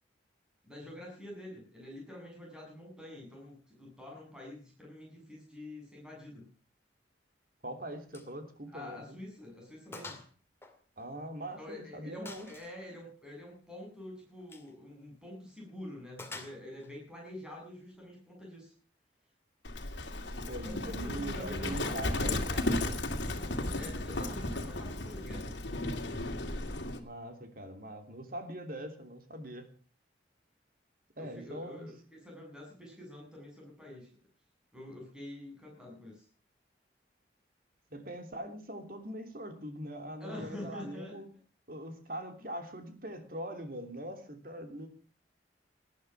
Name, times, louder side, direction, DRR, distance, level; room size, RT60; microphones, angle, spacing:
voice 1, 0.6-6.5 8.7-10.2 11.6-18.7 20.6-22.8 23.4-25.5 31.2-34.2 34.7-36.3 40.2-41.2, left 1 dB, 5° right, -2 dB, 7.8 m, -46 dB
voice 2, 7.6-9.2 11.0-12.5 20.5-22.8 27.0-29.7 31.2-31.9 37.9-41.3 41.7-44.9, right 1 dB, 50° right, 6 dB, 3.1 m, -42 dB
Gunshot gunfire, 8.1-8.3 8.7-8.8 9.3-9.4 9.9-10.3 10.6-11.6 12.3-12.8 14.4-14.7 16.2-16.9, left 3 dB, 15° left, 2.4 m, -47 dB
Livestock farm animals working animals, 19.6-27.0, left 2 dB, 75° left, 2.5 m, -34 dB
19.5 x 12.0 x 6.1 m, 0.40 s
head